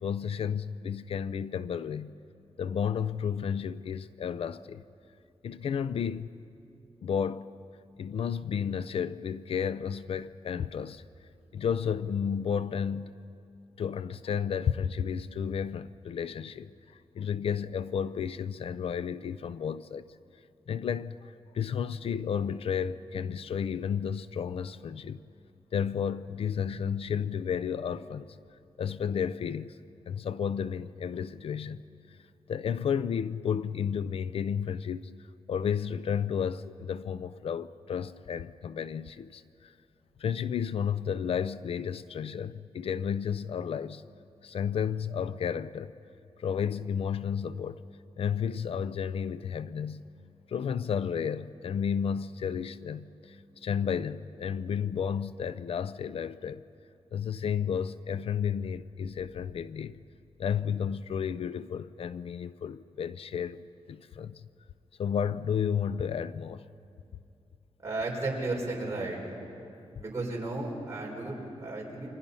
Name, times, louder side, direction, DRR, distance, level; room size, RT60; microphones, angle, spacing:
voice 1, 0.0-2.1 2.6-4.8 5.4-6.3 7.0-7.5 8.0-11.0 11.5-13.2 13.8-20.1 20.7-25.2 25.7-28.4 28.8-29.8 30.1-31.8 32.5-35.1 35.5-39.7 40.2-44.0 44.4-45.9 46.4-47.8 48.2-50.0 50.5-56.6 57.1-60.0 60.4-64.4 65.0-66.7 69.6-69.7, left 7 dB, 65° left, 0.5 m, -32 dB
voice 2, 67.8-69.2 70.0-72.1, right 2 dB, 25° right, 4.8 m, -34 dB
29.5 x 25.0 x 5.5 m
wide cardioid pair, 170°, 11 cm